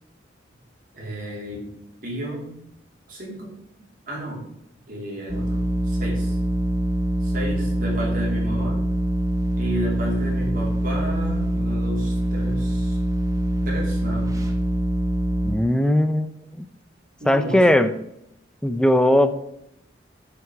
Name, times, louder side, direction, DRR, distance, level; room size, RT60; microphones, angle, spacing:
voice 1, 0.9-1.6 2.0-2.5 3.1-3.5 4.1-4.4 4.9-6.3 7.2-8.8 9.6-13.0 13.6-14.4 17.2-17.8, right 1 dB, 50° right, -3 dB, 3.0 m, -32 dB
sound 1, 5.3-15.6, right 1 dB, 20° right, 0.9 m, -24 dB
voice 2, 15.4-16.7 17.3-17.9 18.6-19.4, left 1 dB, 5° left, 11 dB, 0.4 m, -19 dB
7.4 x 5.9 x 4.6 m, 0.80 s
head